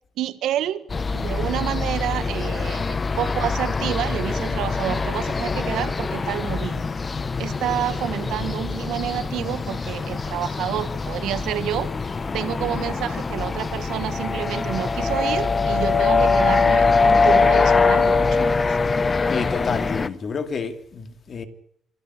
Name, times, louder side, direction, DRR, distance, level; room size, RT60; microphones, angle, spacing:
voice 1, 0.2-0.9 1.1-6.9 7.4-11.9 12.3-18.8, right 12 dB, 85° right, 1.2 m, -29 dB
sound 1, 0.9-20.1, left 4 dB, 35° left, 1.1 m, -23 dB
voice 2, 19.3-21.5, left 5 dB, 50° left, 2.6 m, -29 dB
26.5 x 13.0 x 9.8 m
cardioid pair, 90°, 0 cm